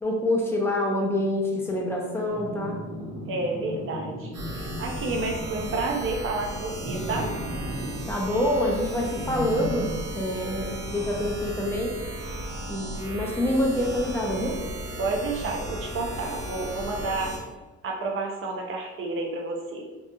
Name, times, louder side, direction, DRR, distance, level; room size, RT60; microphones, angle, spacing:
voice 1, 0.0-2.8 8.1-11.9 12.7-14.6, left 1 dB, 10° left, -1 dB, 0.5 m, -26 dB
sound 1, 2.3-5.9 6.8-8.0 9.2-9.9, equal, 15° right, 0.9 m, -36 dB
voice 2, 3.3-7.3 15.0-17.4 17.8-20.0, right 3 dB, 45° right, 1 dB, 0.5 m, -30 dB
sound 2, 4.3-17.4, right 1 dB, 65° right, 0.9 m, -35 dB
2.9 x 2.4 x 2.2 m, 1.3 s
cardioid pair, 90°, 30 cm